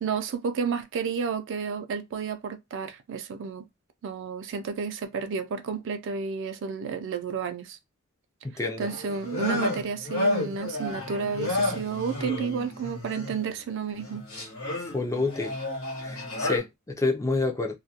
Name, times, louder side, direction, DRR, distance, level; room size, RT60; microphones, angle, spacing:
voice 1, 0.0-3.7 4.0-7.8 8.8-14.2, right 5 dB, 60° right, 0.4 m, -31 dB
voice 2, 8.4-8.9 14.9-15.6 16.0-17.8, left 3 dB, 15° left, 0.4 m, -28 dB
sound 1, 8.8-13.5 14.0-16.6, left 2 dB, 70° left, 1.0 m, -31 dB
2.3 x 2.2 x 2.7 m
head